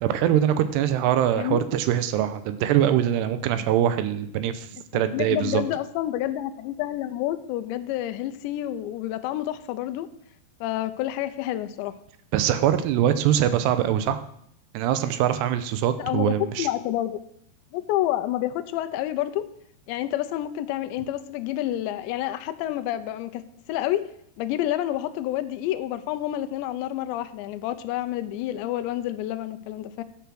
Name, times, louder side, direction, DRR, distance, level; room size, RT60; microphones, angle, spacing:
voice 1, 0.0-5.6 12.3-14.2 14.7-16.7, right 10 dB, 80° right, 11 dB, 2.7 m, -23 dB
voice 2, 1.3-1.6 5.1-10.1 10.6-11.9 16.0-17.2 17.7-19.5 19.9-23.4 23.7-24.1 24.4-30.0, left 13 dB, 85° left, 10 dB, 2.9 m, -29 dB
12.0 x 6.8 x 6.3 m, 0.70 s
omnidirectional pair, 5.0 m